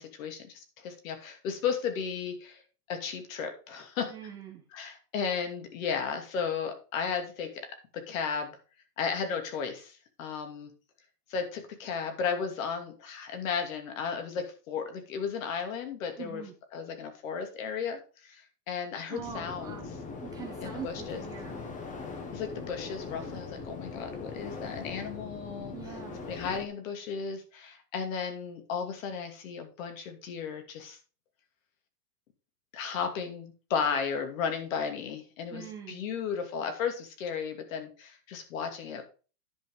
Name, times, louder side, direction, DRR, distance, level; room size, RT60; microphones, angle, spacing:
voice 1, 0.0-2.6 2.9-4.1 4.7-8.6 9.0-10.7 11.3-16.4 16.7-19.8 20.6-21.2 22.3-25.7 26.2-31.0 32.7-39.0, left 6 dB, 55° left, 6 dB, 2.6 m, -34 dB
voice 2, 4.1-4.6 16.2-16.5 19.1-21.6 25.7-26.2 35.5-36.0, right 8 dB, 10° right, 2 dB, 0.4 m, -43 dB
sound 1, 19.2-26.7, left 4 dB, 15° left, 1.1 m, -41 dB
10.0 x 5.8 x 5.0 m, 0.36 s
supercardioid pair, 150°, 47 cm